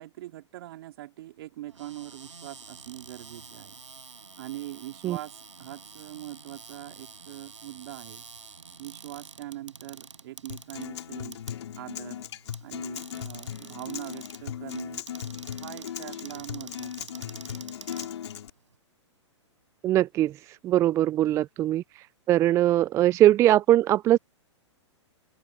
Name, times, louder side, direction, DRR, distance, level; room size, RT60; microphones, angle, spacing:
voice 1, 0.0-3.8 4.4-8.2 8.8-11.4 11.7-12.2 12.6-15.0 15.5-17.7, right 15 dB, 55° right, 3.0 m, -42 dB
Cupboard open or close, 1.7-18.8, right 5 dB, 85° right, 6.4 m, -48 dB
Acoustic guitar, 10.5-18.5, left 9 dB, 65° left, 4.9 m, -38 dB
voice 2, 19.8-24.2, right 13 dB, 20° right, 0.3 m, -22 dB
open air
hypercardioid pair, 115°, 15 cm